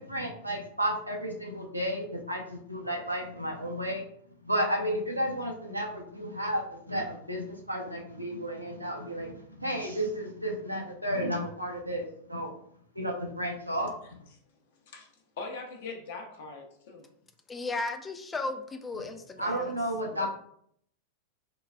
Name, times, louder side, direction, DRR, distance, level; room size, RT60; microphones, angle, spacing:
voice 1, 0.0-4.0 4.4-12.5 12.9-14.3 19.4-20.3, equal, 90° right, 0.6 m, -32 dB
voice 2, 15.4-17.0 20.1-20.3, left 4 dB, 55° left, 0.7 m, -41 dB
voice 3, 17.5-19.7 20.2-20.3, left 3 dB, 15° left, 0.4 m, -35 dB
3.8 x 2.3 x 2.3 m
figure-of-eight pair, 90°, 0 cm